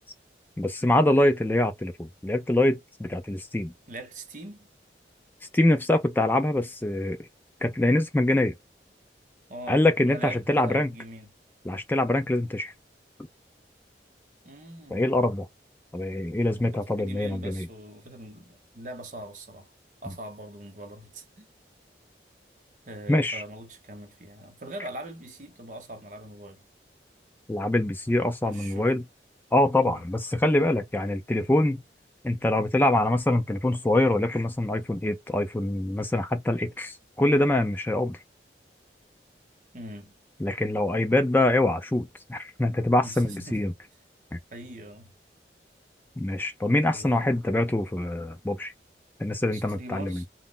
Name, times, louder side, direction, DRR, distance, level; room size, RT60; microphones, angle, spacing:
voice 1, 0.6-3.7 5.5-7.2 7.6-8.5 9.7-10.9 11.7-12.7 14.9-15.5 15.9-17.7 23.1-23.4 27.5-29.0 29.5-31.8 32.2-38.2 40.4-43.7 44.3-44.4 46.2-48.7 49.2-50.2, left 1 dB, 10° left, 0.3 m, -24 dB
voice 2, 3.9-4.7 9.5-11.3 14.4-15.1 16.7-19.7 20.0-21.5 22.9-26.6 28.4-28.9 29.8-30.0 39.7-40.1 43.0-43.6 44.5-45.1 46.9-47.3 49.5-50.3, right 1 dB, 45° right, 0.8 m, -42 dB
2.1 x 2.1 x 3.7 m
head